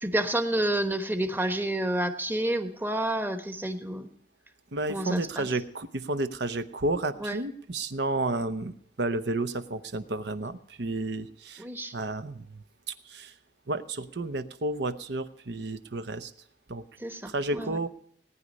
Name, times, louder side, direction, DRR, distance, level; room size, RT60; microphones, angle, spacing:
voice 1, 0.0-4.1 4.9-5.5 7.2-7.4 11.6-11.9 17.0-17.8, right 1 dB, 10° right, 8 dB, 1.1 m, -29 dB
voice 2, 4.7-11.7 11.9-13.3 13.7-16.3 16.7-16.8 17.3-17.9, right 2 dB, 70° right, 11 dB, 0.9 m, -31 dB
18.5 x 9.7 x 5.3 m, 0.65 s
head